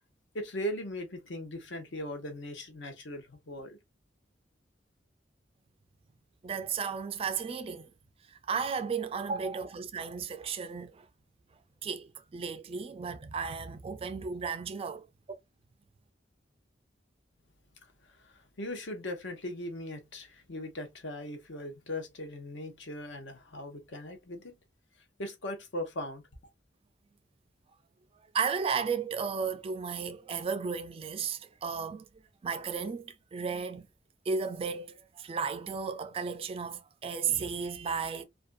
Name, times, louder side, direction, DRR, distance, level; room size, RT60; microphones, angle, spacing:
voice 1, 0.3-3.8 17.8-24.5 25.2-26.2, left 1 dB, 80° left, 0.8 m, -39 dB
voice 2, 6.4-7.9 8.3-11.1 11.8-15.1 28.3-32.1 32.4-33.9 34.3-38.2, right 5 dB, 30° right, 0.3 m, -34 dB
2.5 x 2.3 x 2.4 m
head